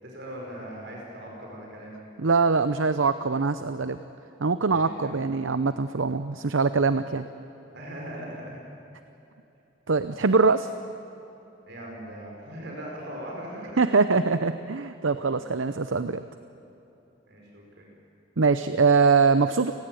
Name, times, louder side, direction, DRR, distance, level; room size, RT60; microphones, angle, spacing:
voice 1, 0.0-2.0 4.7-5.2 7.7-8.6 11.7-13.8 15.4-15.5 17.3-17.9, right 1 dB, 60° right, -1 dB, 5.1 m, -40 dB
voice 2, 2.2-4.0 4.4-7.2 9.9-10.7 13.8-16.2 18.4-19.7, right 4 dB, 75° right, 11 dB, 0.7 m, -23 dB
29.5 x 19.0 x 9.1 m, 3.0 s
head